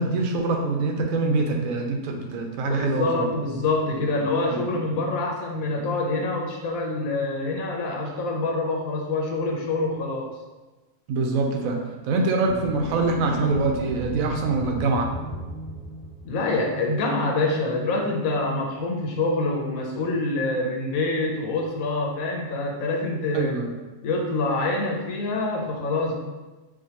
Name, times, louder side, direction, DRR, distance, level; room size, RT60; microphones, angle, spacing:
voice 1, 0.0-3.3 4.5-4.6 11.1-11.8 12.0-15.1 23.3-23.7, right 3 dB, 80° right, 2 dB, 1.0 m, -24 dB
voice 2, 2.6-10.3 16.2-23.5 24.0-26.2, left 2 dB, 90° left, 1 dB, 1.1 m, -26 dB
sound 1, 12.5-16.7, equal, 30° left, 0.6 m, -35 dB
4.8 x 2.2 x 2.8 m, 1.2 s
omnidirectional pair, 1.4 m